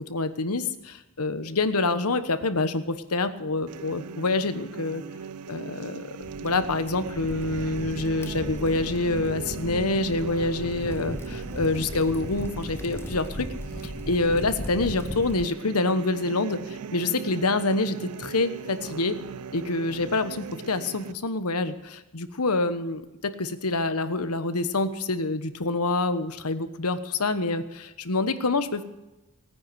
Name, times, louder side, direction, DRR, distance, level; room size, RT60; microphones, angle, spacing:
voice 1, 0.0-5.0 5.5-6.1 6.4-13.5 14.1-19.1 19.5-28.8, left 2 dB, 85° left, 11 dB, 1.3 m, -26 dB
sound 1, 3.7-21.1, right 6 dB, 85° right, 0.5 m, -39 dB
Crackle, 6.2-15.5, left 1 dB, 10° left, 0.5 m, -37 dB
19.0 x 9.6 x 7.9 m, 1.0 s
head